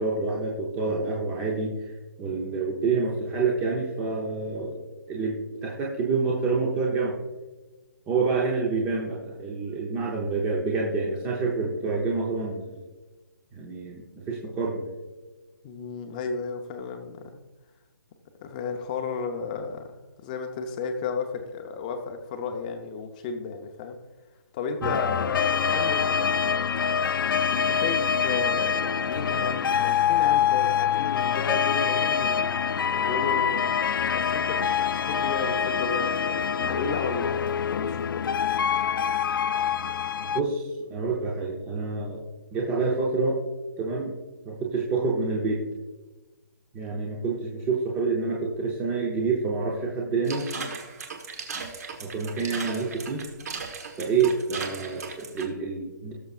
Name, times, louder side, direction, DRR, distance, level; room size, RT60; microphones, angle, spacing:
voice 1, 0.0-1.8 2.2-4.8 5.1-7.2 8.1-12.8 13.5-14.9 24.8-25.0 40.3-42.2 42.5-43.4 43.8-44.1 44.5-45.6 46.7-50.5 52.0-53.2 54.0-56.1, right 4 dB, 10° right, 0.8 m, -27 dB
voice 2, 15.6-17.3 18.4-19.9 20.2-24.0 24.5-26.3 27.5-33.7 34.1-38.2, left 5 dB, 20° left, 0.7 m, -33 dB
sound 1, 24.8-40.4, left 8 dB, 70° left, 0.4 m, -25 dB
sound 2, 50.2-55.5, right 5 dB, 45° right, 1.3 m, -37 dB
18.5 x 6.6 x 2.5 m
hypercardioid pair, 165°, 12 cm